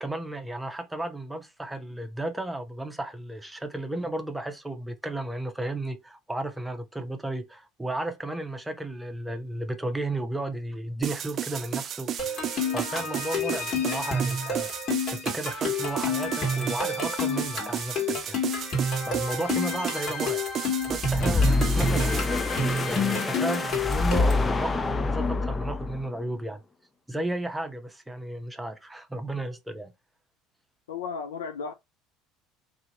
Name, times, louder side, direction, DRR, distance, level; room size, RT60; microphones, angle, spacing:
voice 1, 0.0-14.7 15.1-18.4 19.1-20.4 20.9-22.4 22.9-26.6 27.1-29.9, right 1 dB, 10° right, 0.8 m, -33 dB
sound 1, 11.0-22.3, right 9 dB, 45° right, 0.4 m, -33 dB
sound 2, 12.2-24.5, left 2 dB, 45° left, 1.6 m, -29 dB
sound 3, 20.9-26.1, left 3 dB, 25° left, 0.4 m, -26 dB
voice 2, 30.9-31.7, left 5 dB, 80° left, 0.4 m, -34 dB
2.7 x 2.7 x 3.9 m
hypercardioid pair, 70°, 0 cm